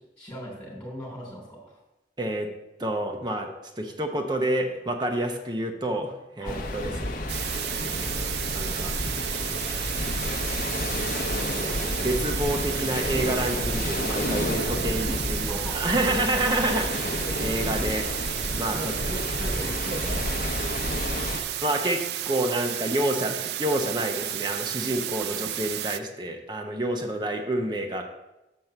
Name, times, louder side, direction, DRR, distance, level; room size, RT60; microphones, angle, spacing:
voice 1, 0.2-1.8 6.4-6.7 15.5-16.7 17.2-17.7 18.7-20.8 27.0-27.1, equal, 5° left, -4 dB, 3.1 m, -39 dB
voice 2, 2.2-2.5 2.8-3.5 3.8-7.4 8.5-8.9 11.5-18.1 18.5-18.9 21.6-28.0, right 1 dB, 25° right, 4 dB, 0.8 m, -28 dB
sound 1, 6.4-21.4, left 1 dB, 50° left, 0.9 m, -30 dB
sound 2, 7.3-26.0, right 12 dB, 65° right, 0.3 m, -32 dB
7.4 x 4.6 x 6.7 m, 0.96 s
head